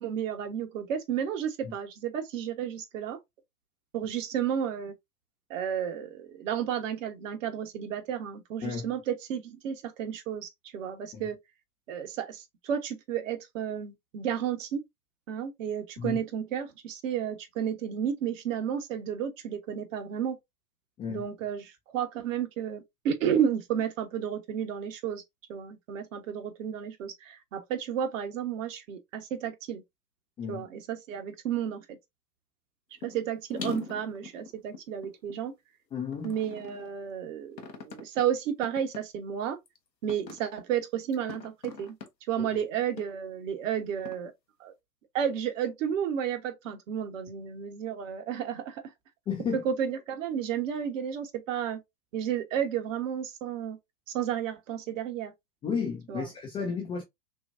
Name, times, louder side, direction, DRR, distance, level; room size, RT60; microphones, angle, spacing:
voice 1, 0.0-3.2 3.9-4.9 5.5-11.4 11.9-14.8 15.3-20.4 21.1-25.2 25.5-29.8 30.5-32.0 33.0-35.5 36.2-39.6 40.0-41.9 42.3-44.3 44.6-44.7 45.1-48.8 49.6-51.8 52.1-53.8 54.1-55.3 56.1-56.2, right 9 dB, 50° right, 1.3 m, -32 dB
sound 1, 33.0-33.2 33.5-35.4 36.1-36.9 37.6-38.2 38.6-39.0 39.7-39.8 40.1-40.5 41.1-42.1 43.0-43.1 44.1-44.2, left 4 dB, 90° left, 1.1 m, -41 dB
voice 2, 35.9-36.4 49.3-49.6 55.6-57.0, left 6 dB, 10° left, 0.5 m, -33 dB
6.1 x 2.4 x 2.6 m
figure-of-eight pair, 110°, 49 cm